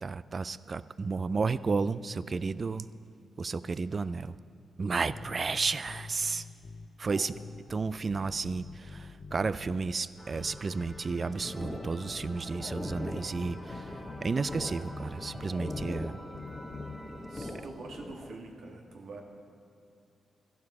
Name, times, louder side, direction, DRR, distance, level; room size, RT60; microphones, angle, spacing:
voice 1, 0.0-2.9 3.4-4.4 4.8-6.5 7.0-7.3 7.7-16.2, right 4 dB, 40° right, 16 dB, 0.4 m, -32 dB
sound 1, 5.1-6.9 7.3-9.9 10.3-12.9 13.3-15.9 16.3-17.0, left 4 dB, 70° left, 0.8 m, -46 dB
sound 2, 10.2-17.5, equal, 5° left, 1.6 m, -50 dB
sound 3, 11.4-18.4, left 2 dB, 20° left, 0.9 m, -42 dB
voice 2, 17.3-19.2, right 3 dB, 75° right, 2 dB, 1.6 m, -45 dB
13.0 x 11.5 x 4.8 m, 2.7 s
cardioid pair, 85°, 0 cm